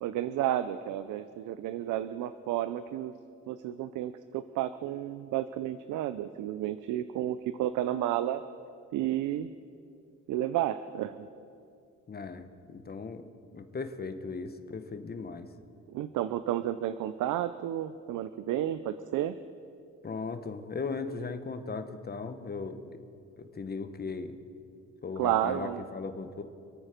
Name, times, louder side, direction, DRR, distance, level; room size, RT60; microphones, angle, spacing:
voice 1, 0.0-3.1 3.5-8.4 8.9-9.5 10.3-11.3 15.9-19.4 25.2-25.8, right 12 dB, 85° right, 12 dB, 0.6 m, -31 dB
voice 2, 12.1-13.3 13.5-15.5 20.0-22.8 23.4-24.4 25.0-26.4, left 4 dB, 30° left, 9 dB, 1.2 m, -37 dB
26.5 x 9.0 x 5.2 m, 2.5 s
cardioid pair, 90°, 30 cm